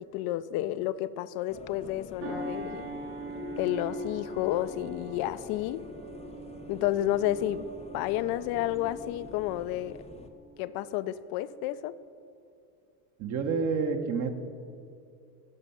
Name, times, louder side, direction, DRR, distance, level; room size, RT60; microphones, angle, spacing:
voice 1, 0.0-2.8 3.6-5.8 6.7-7.7 7.9-10.0 10.6-12.0, left 13 dB, 55° left, 0.5 m, -31 dB
sound 1, 1.5-10.3, left 4 dB, 15° left, 0.6 m, -45 dB
sound 2, 2.2-11.1 11.5-11.7, right 3 dB, 75° right, 2.7 m, -43 dB
voice 2, 13.2-14.3, right 5 dB, 40° right, 0.9 m, -28 dB
12.0 x 5.2 x 5.7 m
supercardioid pair, 95°, 45 cm